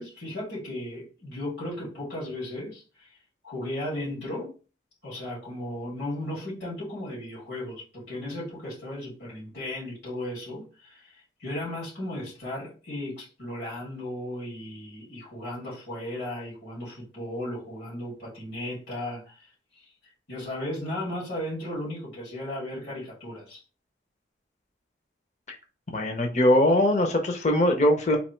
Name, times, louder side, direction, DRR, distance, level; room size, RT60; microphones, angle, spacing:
voice 1, 0.0-3.1 3.4-4.5 5.0-19.5 19.7-23.6, left 1 dB, 75° left, 2.6 m, -35 dB
voice 2, 25.9-28.2, left 1 dB, 40° left, 0.7 m, -21 dB
4.1 x 2.8 x 4.5 m
head